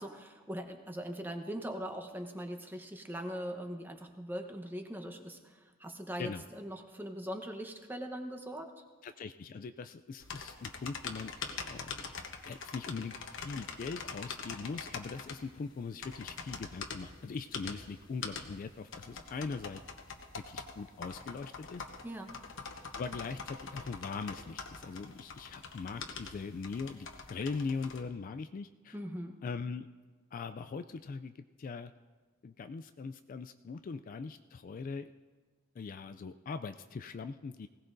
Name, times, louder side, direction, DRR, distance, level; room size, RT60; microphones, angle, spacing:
voice 1, 0.0-8.7 22.0-22.4 28.9-29.4, equal, 10° right, 5 dB, 1.0 m, -41 dB
voice 2, 9.0-11.3 11.6-11.9 12.5-13.2 13.4-19.8 20.5-21.8 22.9-29.0 29.4-29.9 30.3-31.9 32.4-35.1 35.8-37.7, left 4 dB, 40° left, 9 dB, 0.3 m, -41 dB
sound 1, 10.2-28.0, left 5 dB, 60° left, 1.1 m, -44 dB
20.5 x 17.0 x 2.6 m, 1.4 s
head